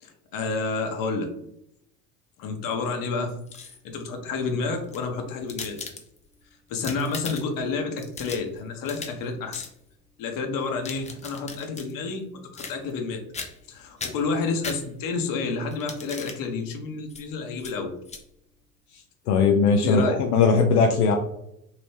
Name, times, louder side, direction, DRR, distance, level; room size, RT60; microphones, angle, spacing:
voice 1, 0.0-1.3 2.4-3.3 3.8-5.8 6.7-9.6 10.2-12.2 12.5-13.2 13.7-17.9 19.8-20.2, left 4 dB, 45° left, 4 dB, 0.9 m, -29 dB
sound 1, 3.3-4.0 4.7-6.3 6.7-7.6 8.0-9.2 9.5-9.7 10.6-11.9 12.5-13.1 13.3-13.7 14.0-15.2 15.7-16.4 17.1-17.2 17.6-17.7 18.1-18.2, left 4 dB, 15° left, 0.5 m, -38 dB
voice 2, 19.3-21.1, left 5 dB, 75° left, 2 dB, 0.6 m, -19 dB
3.0 x 2.8 x 3.2 m, 0.76 s
hypercardioid pair, 70°, 46 cm